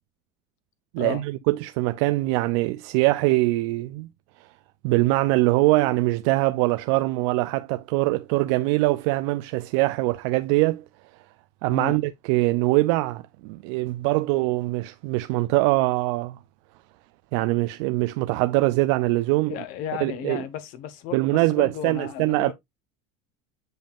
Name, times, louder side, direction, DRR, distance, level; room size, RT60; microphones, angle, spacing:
voice 1, 0.9-4.1 4.8-10.8 11.6-16.4 17.3-19.5 20.0-20.4 21.1-22.5, right 20 dB, 75° right, 0.4 m, -23 dB
voice 2, 11.7-12.0 19.4-22.5, left 11 dB, 60° left, 1.1 m, -34 dB
7.8 x 5.3 x 2.4 m
cardioid pair, 150°, 15 cm